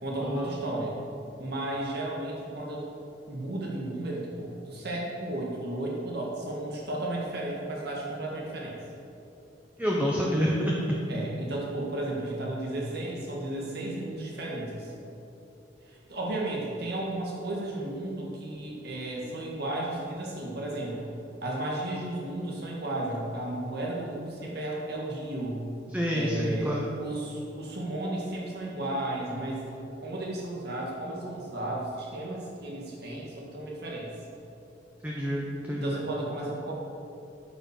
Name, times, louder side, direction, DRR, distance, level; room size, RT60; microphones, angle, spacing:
voice 1, 0.0-1.0 1.4-2.9 3.3-8.8 11.1-14.9 15.9-21.1 21.4-25.6 26.1-29.6 30.0-34.1 35.7-36.7, right 1 dB, 60° right, -3 dB, 1.8 m, -34 dB
voice 2, 9.8-10.7 25.9-26.8 35.0-35.9, equal, 10° right, -3 dB, 1.0 m, -28 dB
13.0 x 5.9 x 6.5 m, 2.8 s
head